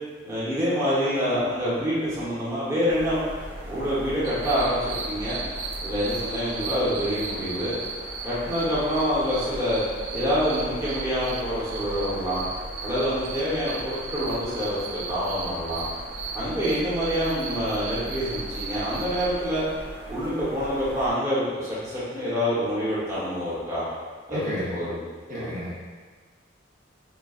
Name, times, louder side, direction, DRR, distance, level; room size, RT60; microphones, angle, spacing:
voice 1, 0.2-3.2 3.7-5.4 5.8-7.7 8.2-9.8 10.1-12.4 12.8-15.8 16.3-19.6 20.1-23.8 24.3-24.4 24.7-25.0 25.3-25.5, equal, 15° right, -10 dB, 1.0 m, -26 dB
sound 1, 2.9-21.1, equal, 70° right, 1.0 m, -39 dB
sound 2, 4.2-19.3, right 4 dB, 85° right, 0.4 m, -36 dB
voice 2, 24.3-24.8 25.3-25.8, equal, 45° right, -9 dB, 0.8 m, -31 dB
5.4 x 2.3 x 2.4 m, 1.5 s
head